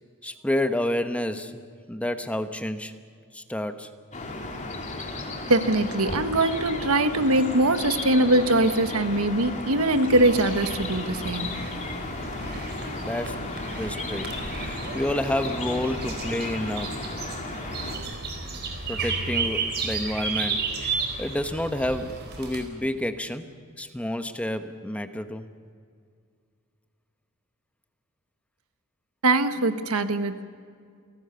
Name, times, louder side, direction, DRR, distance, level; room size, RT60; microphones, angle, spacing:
voice 1, 0.2-3.0 3.3-4.0 12.9-17.0 18.9-23.5 23.8-25.5, left 1 dB, 5° left, 8 dB, 1.0 m, -30 dB
sound 1, 4.1-18.0, left 2 dB, 35° left, 3.1 m, -34 dB
voice 2, 5.5-11.5 29.2-30.4, right 2 dB, 75° right, 9 dB, 1.4 m, -22 dB
sound 2, 10.1-22.6, right 4 dB, 50° right, 4.1 m, -33 dB
28.5 x 18.0 x 6.9 m, 2.2 s
head